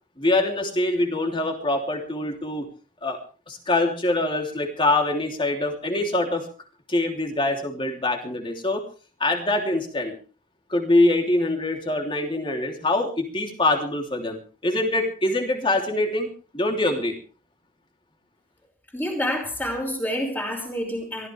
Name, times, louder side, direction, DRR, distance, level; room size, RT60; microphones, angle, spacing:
voice 1, 0.2-2.7 3.0-3.2 3.5-6.5 6.9-8.8 9.2-10.1 10.7-14.4 14.6-16.3 16.5-17.2, left 2 dB, 25° left, 3 dB, 3.2 m, -24 dB
voice 2, 18.9-21.3, equal, 10° left, 2 dB, 5.2 m, -28 dB
24.0 x 15.0 x 3.5 m, 0.37 s
head